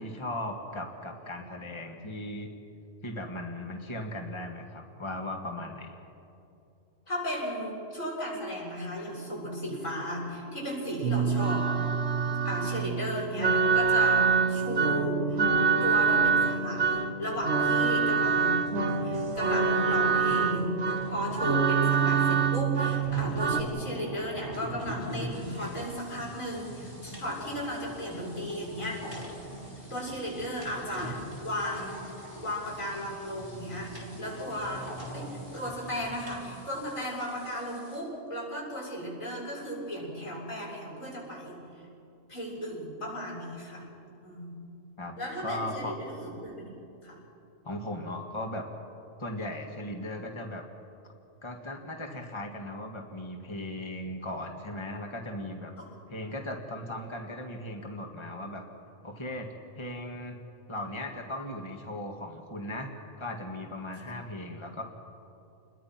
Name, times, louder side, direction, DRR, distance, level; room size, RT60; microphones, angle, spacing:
voice 1, 0.0-2.5 3.0-6.0 45.0-45.9 47.6-48.6 49.2-50.6 51.4-55.7 56.1-58.6 59.0-60.4 60.7-62.9 63.2-64.8, left 1 dB, 20° left, 2 dB, 1.9 m, -37 dB
voice 2, 7.1-11.9 12.4-15.4 15.8-18.7 19.0-29.0 29.9-32.0 32.4-34.9 35.1-41.6 42.3-43.8 44.2-44.6 45.2-46.7 47.0-47.2 55.8-55.9 64.1-64.2, equal, 85° left, -4 dB, 7.3 m, -35 dB
sound 1, 11.0-23.6, right 5 dB, 60° right, 1.4 m, -26 dB
sound 2, 17.5-36.5, right 1 dB, 15° right, 4.9 m, -43 dB
sound 3, 25.3-38.0, equal, 50° left, 8.5 m, -56 dB
28.5 x 21.5 x 5.9 m, 2.7 s
omnidirectional pair, 1.3 m